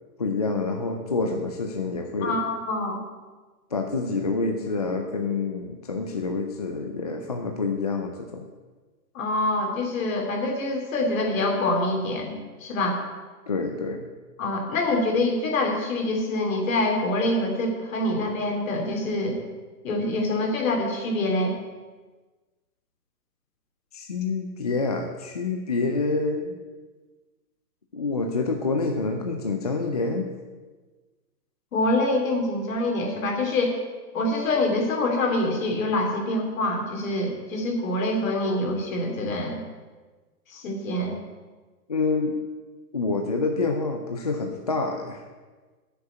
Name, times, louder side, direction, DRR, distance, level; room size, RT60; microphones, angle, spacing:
voice 1, 0.2-2.4 3.7-8.5 13.5-14.1 23.9-26.6 27.9-30.3 41.9-42.4 42.9-45.2, left 3 dB, 25° left, 3 dB, 0.4 m, -27 dB
voice 2, 2.2-3.0 9.1-13.0 14.4-19.4 19.8-21.5 31.7-33.8 34.1-39.6 40.5-41.2, left 2 dB, 55° left, 2 dB, 3.0 m, -25 dB
9.1 x 6.8 x 8.2 m, 1.3 s
hypercardioid pair, 145°, 49 cm